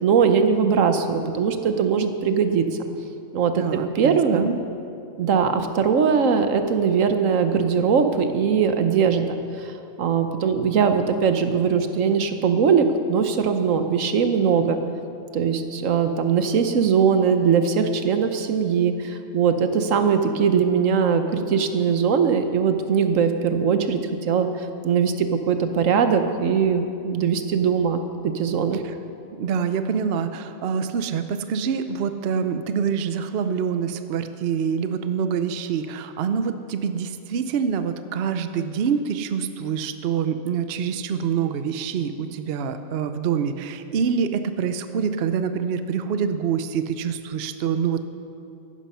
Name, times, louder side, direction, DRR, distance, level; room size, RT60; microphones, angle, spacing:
voice 1, 0.0-2.6 3.3-4.5 5.2-9.7 10.0-14.8 15.3-28.8, right 6 dB, 75° right, 8 dB, 1.3 m, -21 dB
voice 2, 3.5-4.6 28.7-29.0 29.4-48.0, right 7 dB, 55° right, 10 dB, 0.8 m, -26 dB
15.0 x 11.5 x 5.6 m, 2.6 s
omnidirectional pair, 1.4 m